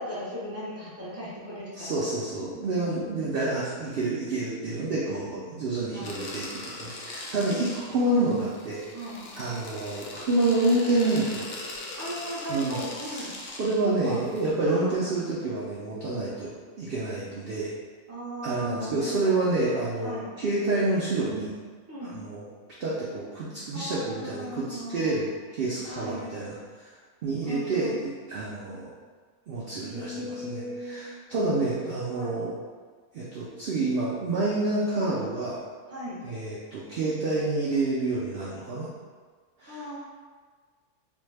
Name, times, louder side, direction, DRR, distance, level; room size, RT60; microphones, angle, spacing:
voice 1, 0.0-2.0 2.3-2.5 5.0-5.3 5.9-6.2 8.9-9.2 12.0-13.3 14.0-14.2 14.7-15.0 18.1-19.5 20.0-20.3 21.9-22.1 23.7-25.2 25.9-26.3 27.4-28.0 29.8-31.1 32.1-32.4 35.9-36.2 39.7-40.0, equal, 15° right, -8 dB, 0.5 m, -37 dB
voice 2, 1.7-8.8 9.3-11.5 12.5-13.3 13.6-17.7 18.4-21.5 22.0-22.5 22.8-26.9 27.2-28.9 29.5-32.5 33.1-35.6 36.2-38.9 39.6-39.8, right 2 dB, 65° right, -7 dB, 0.6 m, -28 dB
sound 1, 6.0-14.5, left 2 dB, 65° left, 0.6 m, -40 dB
3.3 x 2.1 x 3.2 m, 1.5 s
omnidirectional pair, 1.5 m